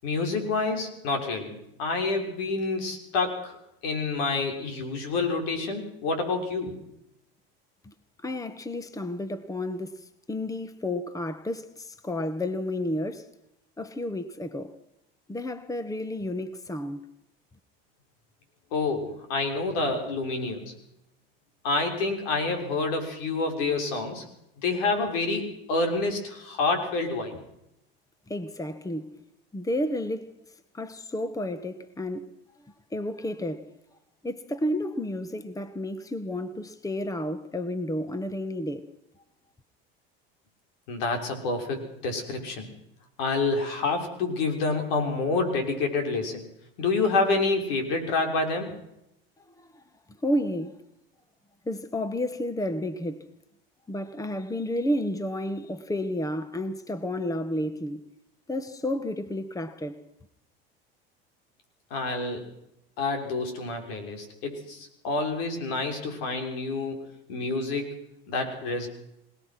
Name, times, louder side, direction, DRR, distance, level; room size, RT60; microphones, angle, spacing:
voice 1, 0.0-3.6 3.8-6.7 18.7-20.7 21.6-24.2 24.6-27.4 40.9-42.7 43.2-46.4 46.8-48.7 61.9-62.5 63.0-68.0 68.3-68.9, left 3 dB, 75° left, 6.3 m, -28 dB
voice 2, 8.2-13.3 13.8-14.7 15.3-17.0 28.3-29.2 29.5-30.3 30.7-32.3 32.9-33.7 34.2-38.9 49.6-49.8 50.2-50.8 51.6-53.3 53.9-58.1 58.5-60.0, left 1 dB, 10° left, 1.6 m, -31 dB
26.0 x 19.0 x 6.1 m
hypercardioid pair, 90°, 30 cm